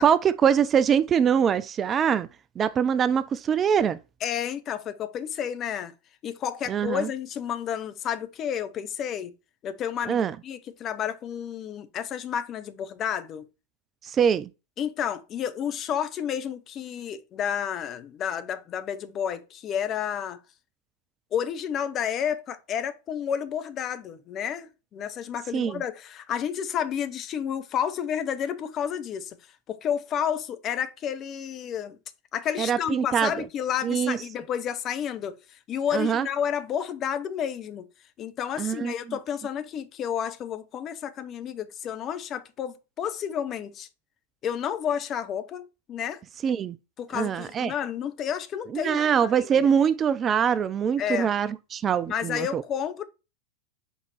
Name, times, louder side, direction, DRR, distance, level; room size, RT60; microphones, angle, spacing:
voice 1, 0.0-2.3 2.6-4.0 6.7-7.1 10.1-10.4 14.0-14.5 25.5-25.8 32.6-33.3 33.8-34.2 35.9-36.3 38.6-38.9 46.4-46.8 47.1-47.7 48.7-52.6, right 7 dB, 25° right, 0.3 m, -23 dB
voice 2, 4.2-5.9 6.2-9.3 9.6-13.5 14.8-20.4 21.3-29.4 29.7-32.0 32.3-35.3 35.7-37.8 38.2-43.9 44.4-46.2 47.0-49.7 51.0-51.3 52.1-53.0, left 8 dB, 30° left, 0.7 m, -31 dB
5.3 x 4.0 x 4.5 m
figure-of-eight pair, 90°, 0 cm